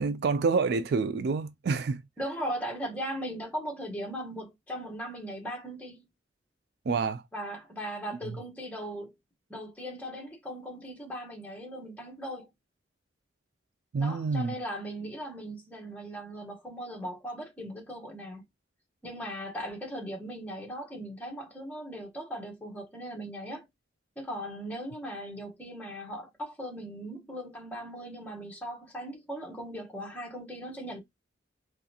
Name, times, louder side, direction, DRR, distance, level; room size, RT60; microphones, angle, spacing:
voice 1, 0.0-2.0 6.9-7.2 13.9-14.5, right 4 dB, 55° right, 0.3 m, -27 dB
voice 2, 2.2-6.1 7.3-9.1 9.5-12.5 14.0-18.4 19.0-23.6 24.2-31.0, equal, 10° left, 1.2 m, -38 dB
3.9 x 3.2 x 2.8 m
head